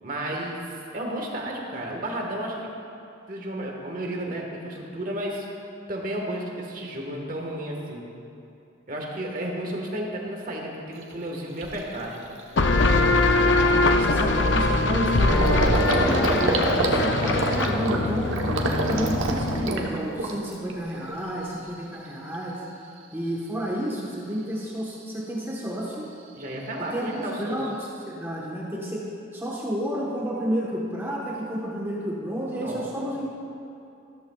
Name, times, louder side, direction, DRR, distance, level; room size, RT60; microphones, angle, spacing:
voice 1, 0.0-2.8 3.3-5.4 5.9-8.1 8.9-12.2 26.4-27.7 32.5-33.0, right 1 dB, 45° right, 0 dB, 1.5 m, -32 dB
Gurgling, 11.0-11.1 11.6-11.9 12.2-12.4 12.7-20.7 21.0-21.7, right 2 dB, 85° right, 1.1 m, -28 dB
sound 1, 12.6-19.9, left 2 dB, 60° left, 0.6 m, -22 dB
voice 2, 13.4-18.3 18.8-22.6 23.1-26.1 26.9-29.0 29.3-33.3, equal, 10° right, -5 dB, 1.2 m, -31 dB
14.0 x 13.0 x 2.4 m, 2.7 s
head